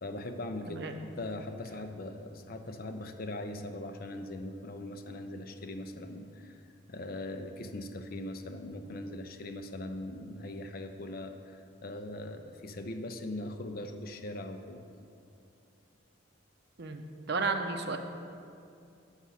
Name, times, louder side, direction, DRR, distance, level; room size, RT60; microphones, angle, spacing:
voice 1, 0.0-6.6 6.9-15.0, left 1 dB, 50° left, 7 dB, 0.5 m, -40 dB
voice 2, 17.3-18.0, right 4 dB, 55° right, 6 dB, 0.6 m, -32 dB
8.0 x 6.2 x 5.6 m, 2.5 s
head